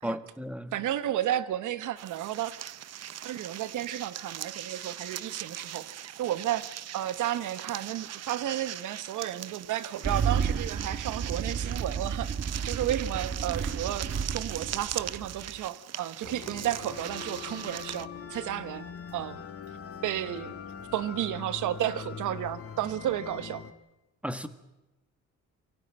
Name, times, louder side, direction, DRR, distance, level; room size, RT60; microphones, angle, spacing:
voice 1, 0.0-0.8 24.2-24.5, equal, 5° right, 1.6 m, -34 dB
voice 2, 0.7-2.5 3.2-5.9 6.2-6.7 6.9-12.3 12.6-18.8 19.1-19.4 20.0-20.5 20.9-23.6, right 12 dB, 80° right, 1.2 m, -32 dB
sound 1, 2.0-18.1, right 11 dB, 55° right, 0.7 m, -40 dB
Engine starting, 10.0-15.6, right 6 dB, 40° right, 1.3 m, -32 dB
sound 2, 16.2-23.7, left 6 dB, 50° left, 2.0 m, -42 dB
23.0 x 16.0 x 8.9 m
cardioid pair, 90°, 30 cm